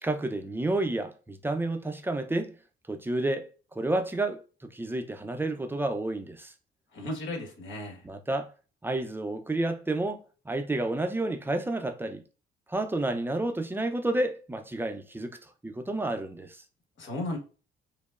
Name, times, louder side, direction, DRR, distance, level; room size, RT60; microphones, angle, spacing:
voice 1, 0.0-2.6 2.9-3.5 3.8-6.5 8.0-8.5 8.8-12.2 12.7-15.4 15.6-16.6, right 2 dB, 10° right, 0.5 m, -30 dB
voice 2, 6.9-8.0 17.0-17.4, left 1 dB, 70° left, 1.3 m, -35 dB
5.0 x 2.0 x 2.4 m
cardioid pair, 90°, 20 cm